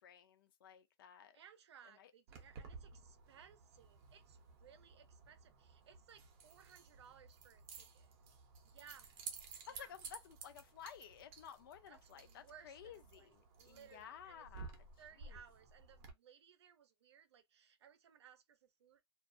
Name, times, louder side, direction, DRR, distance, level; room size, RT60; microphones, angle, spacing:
voice 1, 0.0-1.4 2.0-2.1 9.7-14.9 15.2-15.4, left 9 dB, 55° left, 0.6 m, -55 dB
voice 2, 1.3-8.1 8.6-9.1 9.7-9.9 11.9-13.3 13.6-14.4 15.0-19.0, right 7 dB, 75° right, 0.6 m, -62 dB
Keys jangling, 2.3-16.1, right 5 dB, 30° right, 0.6 m, -55 dB
2.3 x 2.0 x 2.5 m
hypercardioid pair, 155°, 14 cm